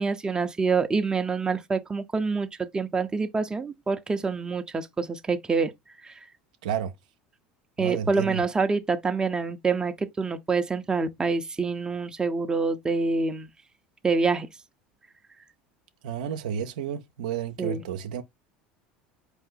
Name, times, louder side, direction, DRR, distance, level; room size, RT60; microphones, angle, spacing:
voice 1, 0.0-5.7 6.0-6.1 7.8-13.5 14.0-14.5 17.6-17.8, right 4 dB, 20° right, 0.7 m, -26 dB
voice 2, 6.6-6.9 7.8-8.4 16.0-18.2, right 8 dB, 85° right, 0.6 m, -31 dB
4.4 x 2.7 x 3.8 m
hypercardioid pair, 80°, 4 cm